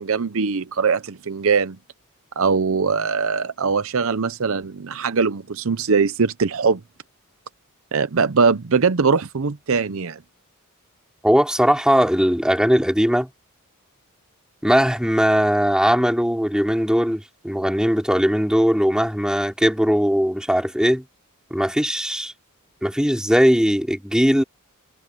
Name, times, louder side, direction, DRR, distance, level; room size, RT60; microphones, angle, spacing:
voice 1, 0.0-1.8 2.4-6.8 7.9-10.2, right 5 dB, 65° right, 0.7 m, -21 dB
voice 2, 11.2-13.3 14.6-21.0 21.5-22.3 22.8-24.4, equal, 5° right, 4.0 m, -19 dB
head